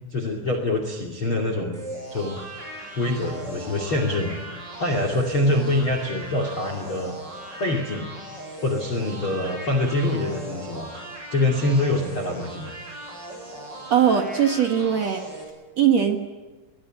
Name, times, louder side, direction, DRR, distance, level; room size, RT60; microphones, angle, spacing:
voice 1, 0.1-1.8 2.1-2.4 3.0-4.4 4.8-7.2 7.6-8.1 8.6-10.9 11.3-12.7, left 1 dB, 35° left, 5 dB, 2.6 m, -25 dB
sound 1, 1.7-15.4, right 1 dB, 20° right, 7.3 m, -38 dB
voice 2, 13.9-15.2 15.8-16.2, right 8 dB, 55° right, 6 dB, 1.9 m, -20 dB
23.0 x 22.0 x 10.0 m, 1.3 s
omnidirectional pair, 5.4 m